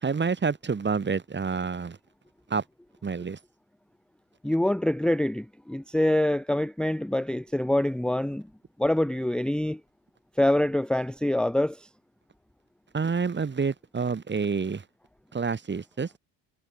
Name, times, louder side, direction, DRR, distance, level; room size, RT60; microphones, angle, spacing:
voice 1, 0.0-2.0 2.5-2.6 3.0-3.4 12.9-14.8 15.3-16.1, right 5 dB, 25° right, 1.9 m, -28 dB
voice 2, 4.4-8.5 8.8-9.8 10.4-11.9, left 1 dB, ahead, 1.0 m, -25 dB
supercardioid pair, 75°, 45 cm